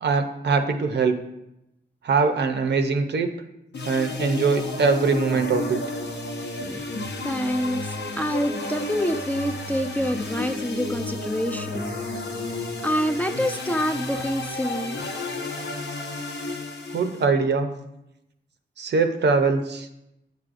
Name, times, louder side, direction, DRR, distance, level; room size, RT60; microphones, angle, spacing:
voice 1, 0.0-1.2 2.0-3.3 3.9-5.8 16.9-17.7 18.8-19.9, right 4 dB, 70° right, 7 dB, 0.6 m, -22 dB
sound 1, 3.7-17.2, left 2 dB, 70° left, 0.8 m, -32 dB
voice 2, 6.6-6.9 7.2-11.9 12.8-15.0, equal, 10° left, 5 dB, 0.3 m, -27 dB
8.1 x 4.8 x 2.5 m, 0.86 s
wide cardioid pair, 105°, 18 cm